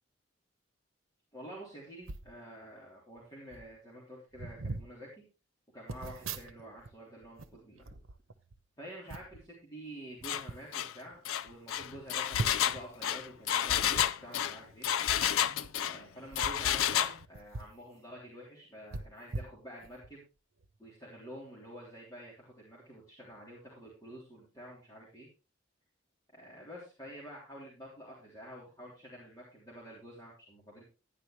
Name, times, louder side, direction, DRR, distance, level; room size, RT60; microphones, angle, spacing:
voice 1, 1.3-5.2 5.7-8.0 8.8-14.9 15.8-20.2 20.8-25.3 26.3-30.8, equal, 20° left, -5 dB, 3.3 m, -49 dB
sound 1, 2.0-2.3 3.2-3.3 3.5-3.8 4.3-4.9 5.9-6.9 7.2-8.6 9.1-9.4 10.2-10.6 11.1-11.2 11.5-11.6 12.3-12.8 13.9-14.1 15.5-15.7 16.3-17.8 18.1-18.2 18.9-20.1 20.6-20.8, right 3 dB, 85° right, 1.0 m, -41 dB
Engine, 10.2-10.4 10.7-10.9 11.2-16.0 16.4-17.2, left 10 dB, 90° left, 0.4 m, -30 dB
11.5 x 10.0 x 3.2 m, 0.31 s
head